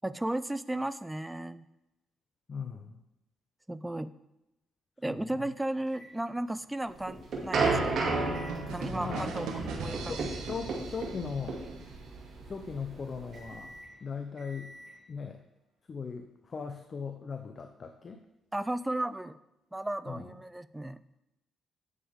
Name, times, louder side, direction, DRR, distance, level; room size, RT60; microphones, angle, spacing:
voice 1, 0.0-1.7 3.7-4.1 5.0-7.9 8.7-10.3 18.5-19.4 19.7-21.0, right 1 dB, 10° right, 14 dB, 0.4 m, -34 dB
voice 2, 2.5-3.0 5.1-5.2 9.0-9.5 9.9-11.6 12.5-13.7 14.0-14.7 15.1-15.4 15.9-18.2 20.1-20.3, left 5 dB, 40° left, 6 dB, 0.7 m, -39 dB
sound 1, 5.9-15.0, right 1 dB, 45° right, 2.3 m, -53 dB
sound 2, 6.9-13.7, right 3 dB, 60° right, 2.6 m, -32 dB
sound 3, 8.5-12.2, right 5 dB, 90° right, 1.1 m, -41 dB
9.8 x 7.2 x 3.6 m, 0.90 s
cardioid pair, 90°, 0 cm